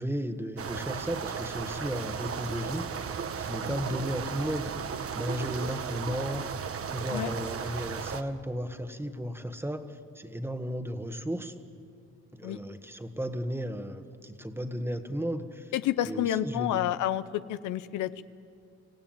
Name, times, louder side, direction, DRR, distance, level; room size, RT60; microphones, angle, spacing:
voice 1, 0.0-4.7 5.1-6.4 6.9-11.5 12.3-15.7 16.0-16.8, equal, 10° right, 8 dB, 1.6 m, -34 dB
sound 1, 0.6-8.2, right 6 dB, 50° right, 1.3 m, -35 dB
voice 2, 15.7-17.2 17.5-18.2, left 12 dB, 80° left, 14 dB, 0.7 m, -29 dB
27.0 x 15.5 x 9.1 m, 2.3 s
cardioid pair, 90°, 30 cm